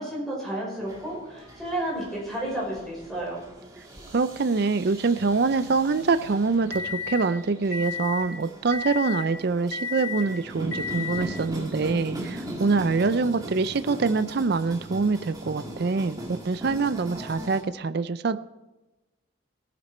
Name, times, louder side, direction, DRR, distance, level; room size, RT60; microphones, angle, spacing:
voice 1, 0.0-3.4, right 1 dB, ahead, -4 dB, 5.3 m, -31 dB
sound 1, 0.8-17.6, right 1 dB, 20° right, 2.1 m, -40 dB
voice 2, 4.1-18.4, right 4 dB, 50° right, 13 dB, 0.5 m, -25 dB
sound 2, 5.2-7.3 7.7-8.3 8.7-9.3 9.7-10.3 10.7-11.3, left 5 dB, 75° left, 1.7 m, -34 dB
17.5 x 9.4 x 4.3 m, 1.1 s
head